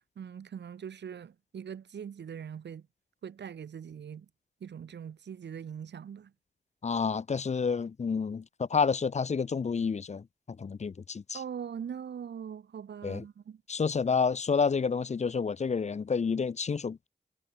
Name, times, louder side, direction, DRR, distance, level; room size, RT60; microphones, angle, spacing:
voice 1, 0.2-2.8 3.2-4.3 4.6-6.3 11.3-13.6, right 8 dB, 80° right, 0.6 m, -41 dB
voice 2, 6.8-10.2 10.6-11.4 13.0-13.2 13.7-17.1, left 5 dB, 40° left, 0.4 m, -29 dB
wide cardioid pair, 90°, 18 cm